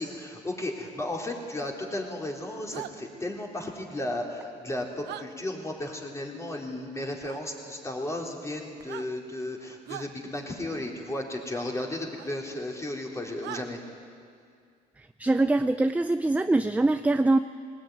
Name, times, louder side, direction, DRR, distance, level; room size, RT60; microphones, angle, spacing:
voice 1, 0.0-13.8, left 1 dB, 15° left, -1 dB, 4.0 m, -34 dB
sound 1, 2.7-2.9 5.0-5.2 7.2-7.4 8.7-9.1 9.8-10.1 12.2-12.3 13.4-13.6, right 14 dB, 80° right, 0.8 m, -39 dB
voice 2, 15.0-17.4, right 2 dB, 10° right, 10 dB, 0.6 m, -23 dB
21.0 x 19.0 x 9.5 m, 2.2 s
cardioid pair, 110°, 17 cm